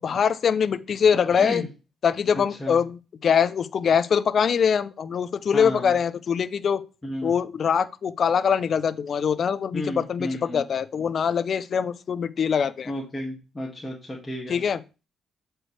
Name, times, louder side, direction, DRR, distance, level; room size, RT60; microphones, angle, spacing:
voice 1, 0.0-1.6 2.0-6.8 7.2-12.9 14.5-14.8, left 7 dB, 55° left, 0.5 m, -23 dB
voice 2, 1.1-1.7 2.3-2.8 5.5-6.0 7.0-7.4 9.7-10.6 12.8-14.6, left 1 dB, 15° left, 1.7 m, -33 dB
7.8 x 4.5 x 3.3 m
cardioid pair, 90°, 0 cm